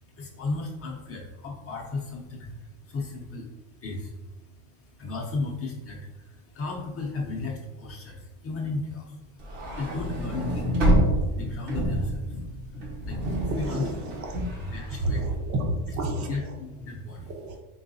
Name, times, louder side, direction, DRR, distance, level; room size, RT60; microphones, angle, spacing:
voice 1, 0.0-14.2 14.6-15.2 16.3-17.3, left 3 dB, 30° left, -1 dB, 0.6 m, -35 dB
sound 1, 9.4-15.7, equal, 70° right, 1.4 m, -27 dB
voice 2, 13.4-14.4 14.9-16.5 17.3-17.6, right 1 dB, 40° right, 3 dB, 0.8 m, -31 dB
3.9 x 3.3 x 2.6 m, 1.1 s
supercardioid pair, 105°, 45 cm